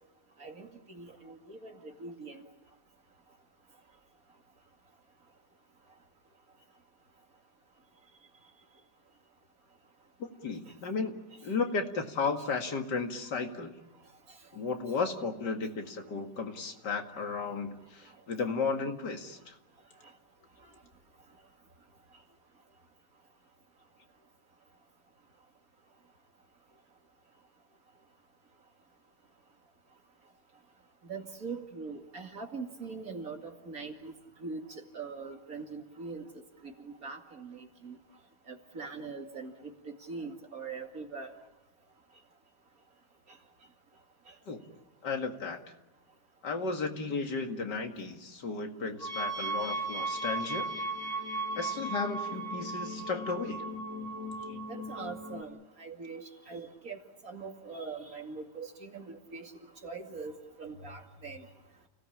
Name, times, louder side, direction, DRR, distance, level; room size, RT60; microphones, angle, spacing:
voice 1, 0.4-2.4 10.7-10.8 31.1-34.1 34.4-36.2 36.6-38.0 38.5-41.3 44.3-44.4 54.7-57.0 57.2-59.5 59.8-61.5, right 4 dB, 55° right, 3 dB, 2.7 m, -42 dB
voice 2, 10.2-11.2 11.4-13.7 14.5-19.5 44.5-44.6 45.0-45.6 46.4-50.7 51.6-53.7 54.5-54.6, left 4 dB, 85° left, 5 dB, 2.6 m, -34 dB
sound 1, 49.0-55.4, right 2 dB, 10° right, 2.4 m, -36 dB
29.5 x 17.5 x 8.7 m, 1.0 s
omnidirectional pair, 1.8 m